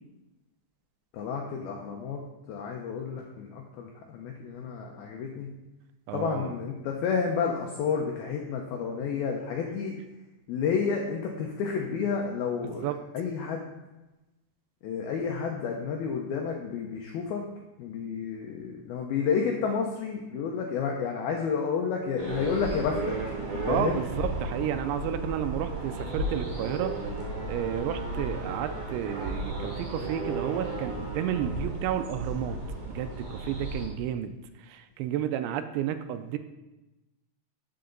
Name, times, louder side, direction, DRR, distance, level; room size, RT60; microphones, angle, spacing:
voice 1, 1.1-2.2 2.5-5.5 6.1-10.0 10.5-13.6 14.8-17.5 17.8-23.1 23.7-24.0, left 6 dB, 80° left, 1 dB, 2.1 m, -30 dB
voice 2, 6.1-6.5 12.8-13.0 23.7-27.0 27.5-32.6 32.9-34.3 34.6-36.4, right 10 dB, 85° right, 10 dB, 2.8 m, -31 dB
sound 1, 22.2-33.9, right 2 dB, 45° right, 3.9 m, -34 dB
13.5 x 6.9 x 3.9 m, 1.0 s
omnidirectional pair, 5.4 m